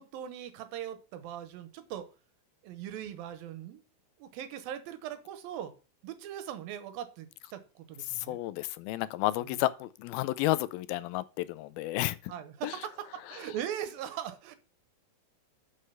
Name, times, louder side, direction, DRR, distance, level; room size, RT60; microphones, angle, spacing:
voice 1, 0.0-2.1 2.6-3.8 4.2-5.7 6.0-8.4 12.3-14.6, right 10 dB, 75° right, 2.6 m, -40 dB
voice 2, 8.1-12.3 12.6-12.8 13.3-13.4, left 17 dB, 85° left, 2.4 m, -32 dB
6.5 x 6.5 x 5.5 m
omnidirectional pair, 4.3 m